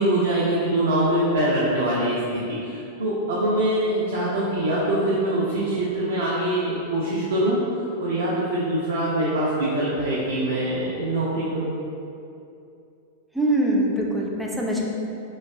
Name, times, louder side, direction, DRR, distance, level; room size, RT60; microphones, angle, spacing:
voice 1, 0.0-11.7, right 1 dB, 70° right, -8 dB, 0.4 m, -24 dB
voice 2, 13.3-14.8, right 1 dB, 5° right, -3 dB, 0.4 m, -23 dB
3.0 x 2.2 x 2.2 m, 2.6 s
figure-of-eight pair, 95°, 0 cm